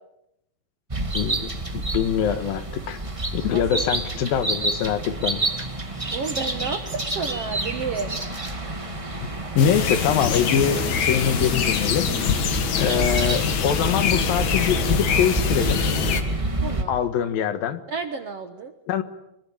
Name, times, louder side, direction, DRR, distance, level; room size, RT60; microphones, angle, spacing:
sound 1, 0.9-16.8, right 2 dB, 20° right, 0.8 m, -28 dB
voice 1, 1.1-3.0 3.3-5.4 9.2-9.3 9.6-12.1 12.8-15.8 16.9-17.8 18.9-19.0, left 8 dB, 75° left, 11 dB, 3.1 m, -24 dB
voice 2, 3.5-3.9 6.1-8.2 12.9-13.1 16.6-17.0 17.9-18.7, right 5 dB, 60° right, 8 dB, 1.7 m, -31 dB
sound 2, 9.6-16.2, left 7 dB, 55° left, 2.9 m, -24 dB
24.5 x 22.0 x 8.7 m, 0.84 s
omnidirectional pair, 4.3 m